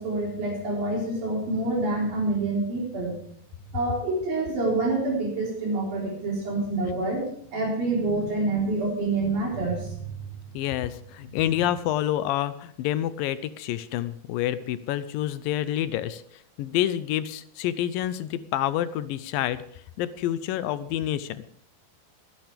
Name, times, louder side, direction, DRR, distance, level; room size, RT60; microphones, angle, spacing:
voice 1, 0.0-3.1 3.7-7.3 7.5-10.1 11.5-11.6, right 2 dB, 65° right, -3 dB, 5.8 m, -27 dB
voice 2, 10.5-16.2 16.6-19.6 20.0-21.4, left 12 dB, 80° left, 14 dB, 2.2 m, -28 dB
22.0 x 10.5 x 3.4 m, 0.65 s
omnidirectional pair, 4.5 m